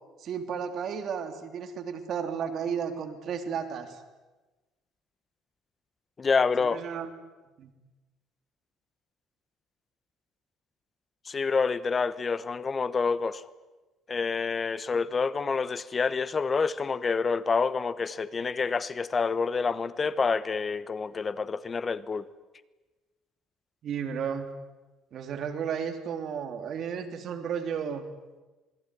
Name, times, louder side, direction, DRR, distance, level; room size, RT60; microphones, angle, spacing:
voice 1, 0.2-4.0 6.6-7.1 7.6-7.7 23.8-24.5 25.1-28.0, right 7 dB, 50° right, 7 dB, 3.3 m, -33 dB
voice 2, 6.2-6.8 11.2-13.4 14.1-22.3, left 5 dB, 25° left, 16 dB, 1.1 m, -28 dB
27.0 x 20.0 x 10.0 m, 1.2 s
cardioid pair, 135°, 0 cm